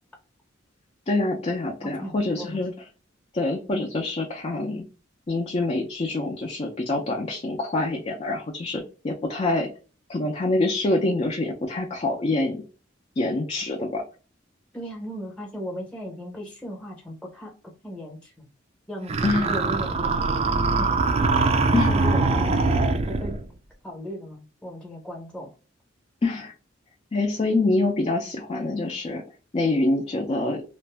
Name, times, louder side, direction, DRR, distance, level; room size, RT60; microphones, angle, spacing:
voice 1, 1.1-2.7 3.3-4.8 5.3-9.7 10.1-12.6 13.2-14.0 19.2-19.5 21.7-21.9 26.2-26.5 27.1-29.2 29.5-30.6, left 2 dB, 30° left, 0 dB, 0.4 m, -25 dB
voice 2, 1.8-2.6 14.7-17.5 17.8-18.5 18.9-19.2 19.5-20.4 20.8-20.9 21.9-22.8 23.1-23.4 23.8-25.5, equal, 5° left, -1 dB, 0.8 m, -37 dB
sound 1, 19.1-23.4, right 3 dB, 30° right, 0.3 m, -22 dB
2.5 x 2.1 x 3.2 m, 0.35 s
head